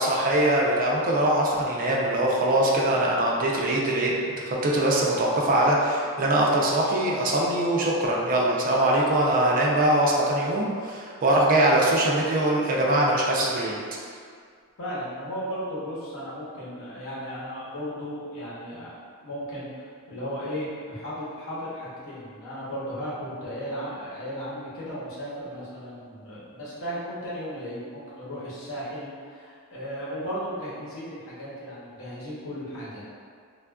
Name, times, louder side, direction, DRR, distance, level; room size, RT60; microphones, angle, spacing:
voice 1, 0.0-4.1 4.4-13.8, right 1 dB, 40° right, -3 dB, 0.4 m, -22 dB
voice 2, 14.8-18.9 19.2-33.0, equal, 65° left, -8 dB, 0.9 m, -35 dB
3.4 x 2.4 x 2.2 m, 2.1 s
head